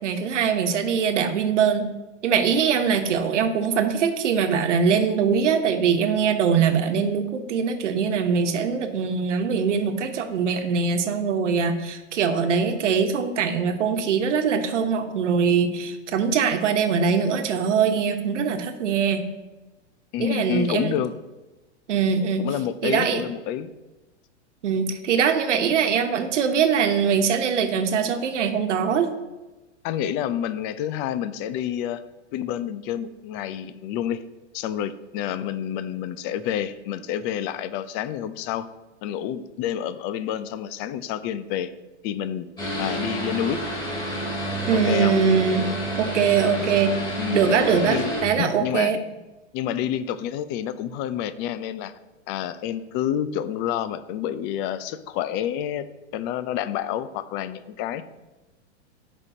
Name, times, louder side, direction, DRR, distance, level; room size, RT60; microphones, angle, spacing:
voice 1, 0.0-1.9 2.2-19.2 20.2-21.0 21.9-22.5 22.8-23.2 24.6-29.1 44.7-45.7 46.0-47.0 47.3-49.0, right 6 dB, 80° right, 6 dB, 1.2 m, -22 dB
voice 2, 20.1-21.1 22.4-23.7 29.8-32.0 32.3-34.2 34.5-38.7 39.0-41.7 42.0-42.5 42.8-43.6 44.7-45.1 47.2-47.4 47.9-48.1 48.4-48.9 49.5-51.9 52.3-55.9 56.1-58.0, left 10 dB, 30° left, 13 dB, 0.5 m, -28 dB
sound 1, 42.6-48.2, right 1 dB, 10° left, 3.3 m, -29 dB
16.0 x 5.4 x 2.8 m, 1.1 s
hypercardioid pair, 130°, 35 cm